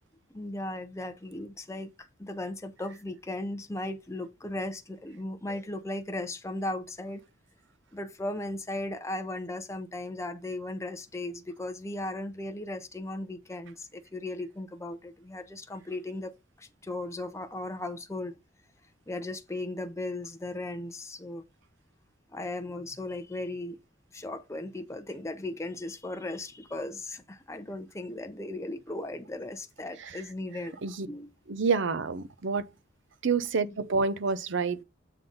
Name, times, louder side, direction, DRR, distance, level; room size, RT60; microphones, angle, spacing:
voice 1, 0.3-1.9 2.2-7.2 7.9-18.4 19.1-21.5 22.3-23.8 24.1-30.8 31.1-31.3, left 2 dB, 15° left, 0.7 m, -37 dB
voice 2, 31.5-32.7 33.2-34.8, right 5 dB, 65° right, 0.7 m, -28 dB
7.3 x 3.9 x 5.3 m
head